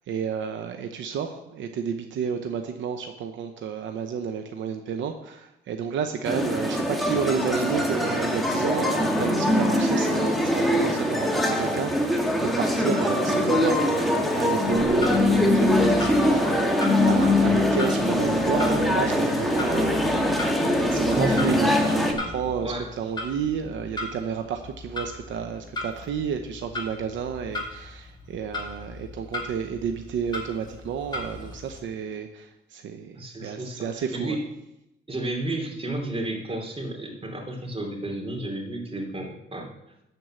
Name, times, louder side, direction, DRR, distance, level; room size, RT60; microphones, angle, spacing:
voice 1, 0.1-20.5 20.7-34.4, right 7 dB, 75° right, 6 dB, 0.8 m, -31 dB
sound 1, 6.3-22.1, left 1 dB, ahead, 1.8 m, -22 dB
Clock, 14.6-31.8, left 2 dB, 20° left, 2.4 m, -38 dB
voice 2, 21.1-21.5 22.6-22.9 33.1-34.4 35.1-39.7, right 1 dB, 30° right, 2 dB, 2.8 m, -32 dB
12.0 x 4.6 x 7.7 m, 0.88 s
cardioid pair, 90°, 20 cm